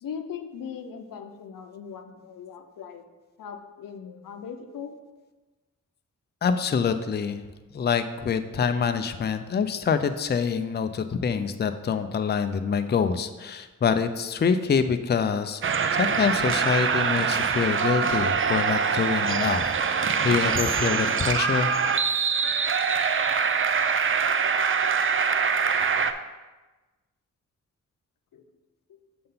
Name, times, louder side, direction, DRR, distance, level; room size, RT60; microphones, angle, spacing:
voice 1, 0.0-3.0 3.4-5.0 28.3-28.4 28.9-29.0, left 7 dB, 85° left, 6 dB, 0.7 m, -39 dB
voice 2, 6.4-7.4 7.7-21.7, left 6 dB, 30° left, 9 dB, 0.4 m, -26 dB
sound 1, 15.6-26.1, right 6 dB, 40° right, 0.5 m, -24 dB
6.8 x 3.7 x 5.6 m, 1.2 s
cardioid pair, 55°, 33 cm